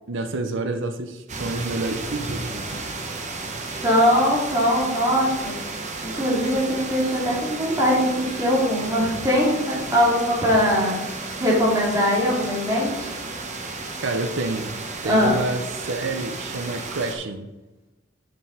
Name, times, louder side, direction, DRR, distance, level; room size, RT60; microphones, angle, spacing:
voice 1, 0.1-2.8 14.0-17.5, right 2 dB, 65° right, 6 dB, 0.7 m, -29 dB
sound 1, 1.3-17.2, right 3 dB, 40° right, 1.0 m, -33 dB
voice 2, 3.8-5.6 6.0-11.0 11.4-13.1 15.0-15.4, equal, 20° right, -5 dB, 2.5 m, -21 dB
6.8 x 6.3 x 4.1 m, 1.0 s
head